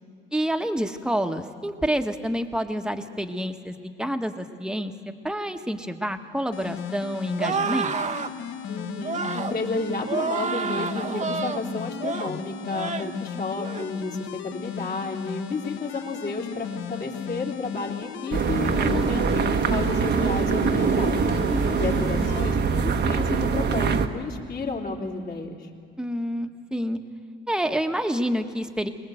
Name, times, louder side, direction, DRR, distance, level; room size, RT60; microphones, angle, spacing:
voice 1, 0.3-4.9 5.2-7.9 21.5-22.0 26.0-27.0 27.5-28.9, equal, 5° right, 6 dB, 1.5 m, -28 dB
sound 1, 6.5-22.5, left 9 dB, 75° left, 1.1 m, -36 dB
sound 2, 7.4-8.3 9.0-9.6 10.1-11.6 12.0-12.3 12.7-13.1 13.6-13.9, right 5 dB, 35° right, 1.1 m, -29 dB
voice 2, 8.7-21.2 21.8-25.7, left 3 dB, 45° left, -1 dB, 3.5 m, -32 dB
sound 3, 18.3-24.1, right 5 dB, 60° right, 1.3 m, -23 dB
22.5 x 20.0 x 7.9 m, 2.3 s
cardioid pair, 90°, 20 cm